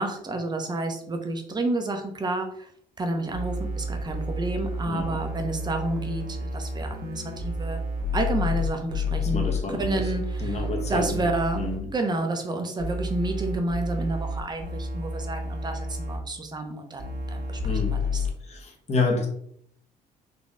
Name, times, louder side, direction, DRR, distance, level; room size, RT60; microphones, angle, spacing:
voice 1, 0.0-2.7 3.0-7.8 8.1-9.4 9.7-10.6 10.9-11.6 11.9-18.2, right 2 dB, 25° right, 5 dB, 0.9 m, -30 dB
sound 1, 3.3-11.8 12.8-16.2 17.0-18.3, left 1 dB, 55° right, 1.3 m, -30 dB
voice 2, 4.8-5.2 9.2-10.1 10.4-11.3 11.5-11.9 17.6-18.0 18.4-19.3, left 3 dB, 40° left, 2 dB, 1.2 m, -29 dB
4.2 x 2.9 x 3.6 m, 0.66 s
cardioid pair, 110°, 17 cm